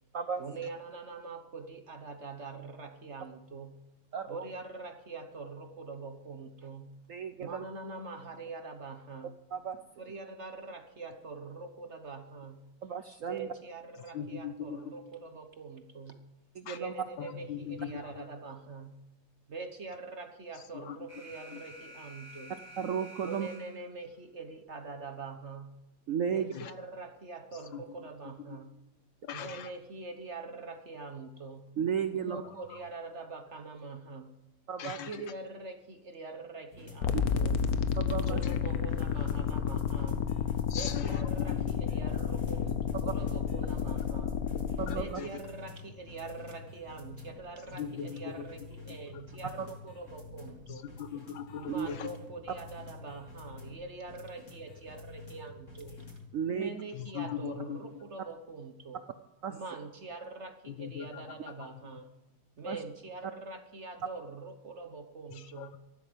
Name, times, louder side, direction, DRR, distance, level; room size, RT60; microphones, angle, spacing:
voice 1, 0.4-3.8 4.3-6.9 7.4-9.4 10.0-12.6 13.2-16.2 16.8-19.0 19.5-22.6 23.2-25.7 26.3-28.7 29.3-31.7 32.1-34.3 35.1-37.6 38.2-40.3 40.7-44.4 44.9-50.9 51.6-56.0 56.5-59.0 59.5-62.1 62.6-65.8, right 3 dB, 45° right, 7 dB, 1.1 m, -44 dB
voice 2, 4.1-4.4 7.1-7.6 9.5-9.8 12.8-13.5 16.6-16.9 22.8-23.5 26.1-26.5 31.8-32.4 34.7-35.0 37.1-37.2 38.0-38.4 44.8-45.1 49.6-49.7 51.7-51.9 56.3-56.7 59.4-59.5 62.7-62.8, right 7 dB, 75° right, 10 dB, 0.7 m, -33 dB
voice 3, 14.1-14.9 16.7-16.8 17.2-18.3 20.7-21.0 21.5-21.6 26.5-26.7 27.7-27.8 29.2-29.7 32.7-32.8 34.8-35.2 38.3-38.6 40.7-41.7 44.9-45.3 47.7-48.5 49.1-49.2 50.7-52.1 56.9-57.9 60.7-61.9 65.3-65.8, left 8 dB, 75° left, 11 dB, 1.7 m, -40 dB
Alarm, 21.1-24.1, equal, 5° left, 2.5 m, -50 dB
sound 1, 36.7-56.3, left 3 dB, 40° left, 3.0 m, -49 dB
sound 2, 37.0-45.0, left 7 dB, 60° left, 1.1 m, -31 dB
14.5 x 12.0 x 5.1 m, 0.99 s
omnidirectional pair, 2.1 m